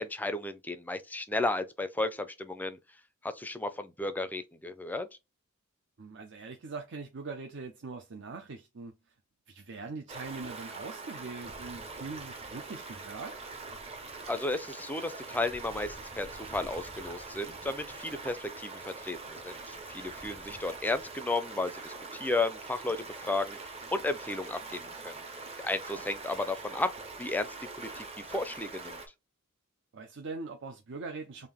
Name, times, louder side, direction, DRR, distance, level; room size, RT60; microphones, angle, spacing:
voice 1, 0.0-2.8 3.2-5.1 14.3-25.2 25.6-26.9 27.2-29.0, left 2 dB, 10° left, 0.4 m, -34 dB
voice 2, 6.0-8.9 9.5-13.5 20.5-20.6 29.9-31.5, right 4 dB, 60° right, 0.6 m, -42 dB
Stream, 10.1-29.1, right 3 dB, 30° right, 0.8 m, -43 dB
3.7 x 2.5 x 3.5 m
head